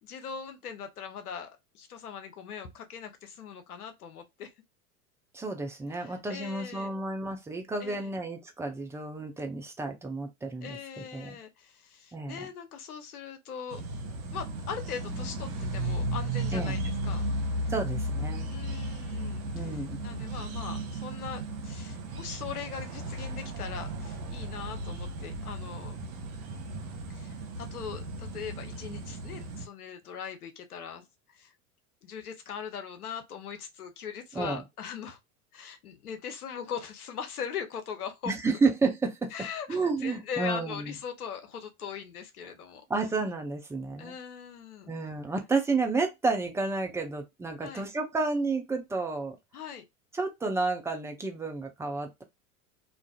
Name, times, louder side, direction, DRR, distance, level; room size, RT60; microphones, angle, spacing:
voice 1, 0.0-1.5 1.7-4.5 5.9-6.9 7.8-8.1 10.6-13.8 14.3-17.2 18.5-19.5 20.0-25.9 27.1-31.5 32.0-35.2 35.5-38.3 39.3-42.8 44.0-44.9 47.6-47.9 49.5-49.8, left 7 dB, 80° left, 0.8 m, -40 dB
voice 2, 5.3-11.4 12.1-12.5 16.5-16.8 17.7-18.5 19.5-20.0 34.3-34.6 38.3-39.3 39.7-41.0 42.9-44.1 44.9-49.4 50.1-52.2, right 3 dB, 5° right, 0.4 m, -31 dB
sound 1, 13.7-29.7, right 1 dB, 65° right, 0.9 m, -35 dB
2.5 x 2.4 x 2.2 m
figure-of-eight pair, 85°, 45 cm